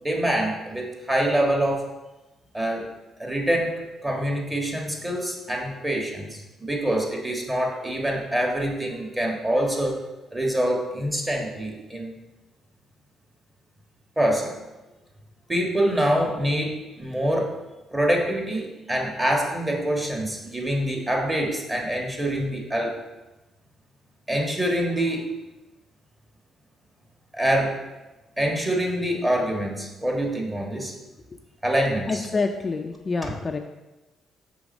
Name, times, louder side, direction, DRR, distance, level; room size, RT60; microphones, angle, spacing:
voice 1, 0.0-1.9 2.5-2.8 3.2-3.7 4.0-10.0 10.3-12.1 14.2-14.5 15.5-17.5 17.9-23.0 24.3-25.3 27.3-27.8 28.4-30.9 31.6-32.3, right 1 dB, 15° right, 0 dB, 1.5 m, -25 dB
voice 2, 32.1-33.6, left 4 dB, 30° left, 4 dB, 0.4 m, -27 dB
6.0 x 3.5 x 5.2 m, 1.1 s
cardioid pair, 90°, 0 cm